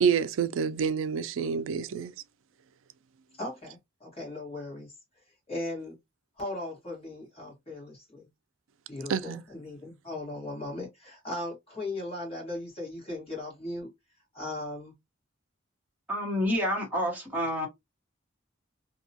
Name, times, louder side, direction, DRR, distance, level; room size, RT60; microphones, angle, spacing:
voice 1, 0.0-2.1 9.1-9.4, right 6 dB, 85° right, 0.3 m, -27 dB
voice 2, 3.4-4.9 5.5-6.0 6.4-8.3 8.9-13.9 14.3-14.9, left 2 dB, 30° left, 1.3 m, -38 dB
voice 3, 16.1-17.7, equal, 10° right, 1.0 m, -28 dB
2.8 x 2.2 x 2.7 m
head